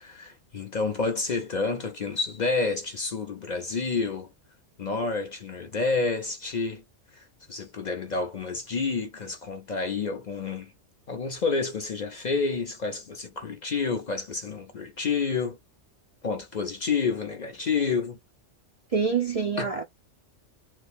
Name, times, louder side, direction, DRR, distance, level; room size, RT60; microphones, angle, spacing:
voice 1, 0.0-4.3 4.8-6.8 7.1-10.7 11.1-15.6 16.2-18.2 19.6-19.7, left 4 dB, 50° left, 0.6 m, -29 dB
voice 2, 18.9-19.8, right 5 dB, 50° right, 0.4 m, -26 dB
3.2 x 2.2 x 3.3 m
omnidirectional pair, 1.2 m